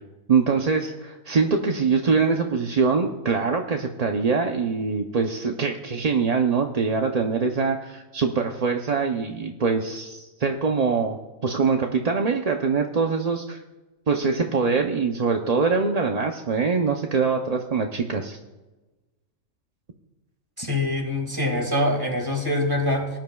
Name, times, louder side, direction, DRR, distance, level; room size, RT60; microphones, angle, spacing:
voice 1, 0.3-13.6 14.1-18.4, right 5 dB, 40° right, 3 dB, 0.6 m, -23 dB
voice 2, 20.6-23.2, left 1 dB, 15° right, 2 dB, 2.1 m, -24 dB
19.5 x 10.5 x 2.3 m, 1.1 s
omnidirectional pair, 1.4 m